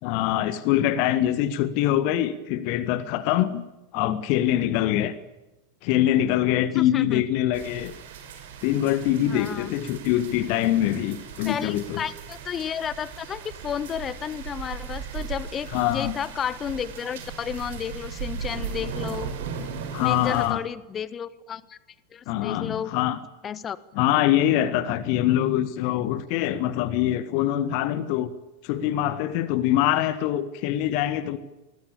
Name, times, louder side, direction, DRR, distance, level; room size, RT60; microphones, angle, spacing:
voice 1, 0.0-3.6 3.9-5.1 5.8-7.9 8.6-12.0 15.7-16.1 19.9-20.6 22.3-23.2 23.9-28.3 28.6-31.4, left 12 dB, 45° left, 13 dB, 1.7 m, -24 dB
voice 2, 6.7-7.2 9.2-9.7 11.4-19.3 20.0-21.8 22.1-22.9 23.4-23.8, left 8 dB, 25° left, 18 dB, 1.2 m, -32 dB
sound 1, 7.5-20.5, right 6 dB, 55° right, 5.4 m, -37 dB
25.0 x 20.5 x 8.7 m, 0.99 s
figure-of-eight pair, 90°, 0 cm